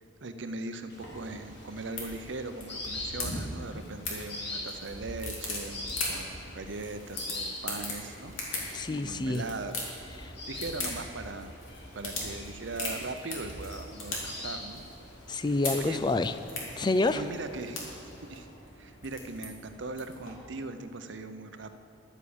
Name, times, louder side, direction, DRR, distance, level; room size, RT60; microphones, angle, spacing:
voice 1, 0.2-8.7 9.0-9.9 10.2-11.5 11.9-14.8 15.8-16.0 17.1-17.8 18.2-18.5 18.8-21.7, right 3 dB, 60° right, 9 dB, 0.7 m, -39 dB
sound 1, 0.9-20.3, left 2 dB, 80° left, 2.9 m, -40 dB
sound 2, 0.9-18.4, left 2 dB, 55° left, 2.3 m, -45 dB
voice 2, 8.7-9.4 10.2-10.3 15.3-16.3 16.8-17.2, left 2 dB, 20° left, 11 dB, 0.3 m, -28 dB
11.5 x 9.6 x 7.1 m, 3.0 s
head